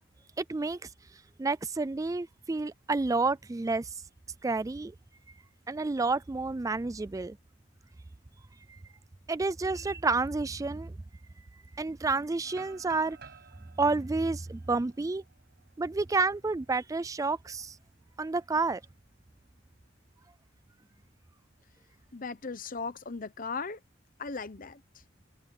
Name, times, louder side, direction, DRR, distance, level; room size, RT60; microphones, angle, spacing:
voice 1, 0.4-0.8 1.4-3.9 4.4-4.9 5.7-7.3 9.3-10.9 11.8-13.2 13.8-15.2 15.8-17.7 18.2-18.8, right 3 dB, 15° right, 0.3 m, -29 dB
sound 1, 12.4-16.4 16.8-16.9 17.4-17.7 19.0-19.9, right 5 dB, 55° right, 7.9 m, -54 dB
voice 2, 22.1-23.8 24.2-24.8, left 4 dB, 45° left, 1.0 m, -37 dB
head